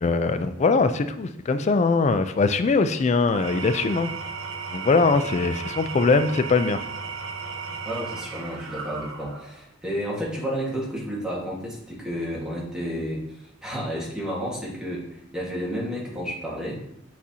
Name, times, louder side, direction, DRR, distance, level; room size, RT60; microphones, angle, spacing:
voice 1, 0.0-4.1 4.7-6.8, left 4 dB, 35° left, 10 dB, 0.3 m, -21 dB
Engine / Tools, 3.2-9.6, right 5 dB, 85° right, 0.8 m, -35 dB
voice 2, 7.8-16.8, equal, 5° right, -5 dB, 1.6 m, -31 dB
8.4 x 4.1 x 2.8 m, 0.80 s
head